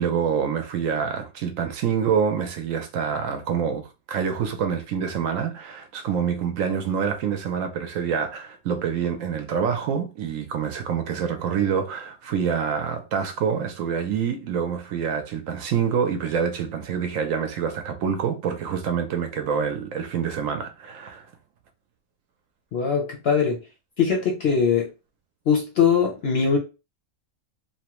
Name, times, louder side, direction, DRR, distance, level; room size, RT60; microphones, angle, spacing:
voice 1, 0.0-21.3, right 7 dB, 70° right, 0.9 m, -26 dB
voice 2, 22.7-23.6 24.0-24.9 25.5-26.6, left 6 dB, 60° left, 0.7 m, -21 dB
2.9 x 2.1 x 2.9 m
omnidirectional pair, 1.5 m